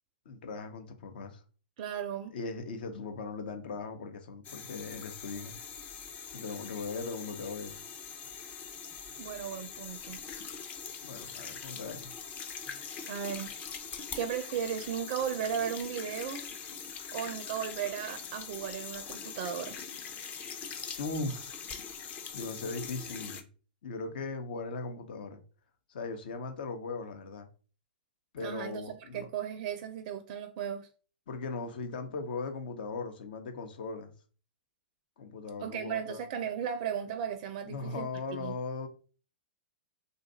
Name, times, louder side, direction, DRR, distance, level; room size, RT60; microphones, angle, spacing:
voice 1, 0.3-1.4 2.3-5.6 6.3-7.8 11.0-12.1 21.0-21.6 22.3-23.4 23.8-25.4 25.9-27.5 28.3-29.3 31.3-34.1 35.2-36.2 37.7-38.9, left 3 dB, 65° left, 0.8 m, -38 dB
voice 2, 1.8-2.3 9.2-10.2 12.7-12.8 13.1-13.5 14.2-16.5 17.1-19.8 28.4-30.9 35.6-38.1 38.4-38.6, right 8 dB, 50° right, 0.4 m, -36 dB
sound 1, 4.4-23.4, left 6 dB, 30° left, 0.5 m, -43 dB
2.6 x 2.4 x 4.1 m
hypercardioid pair, 115°, 6 cm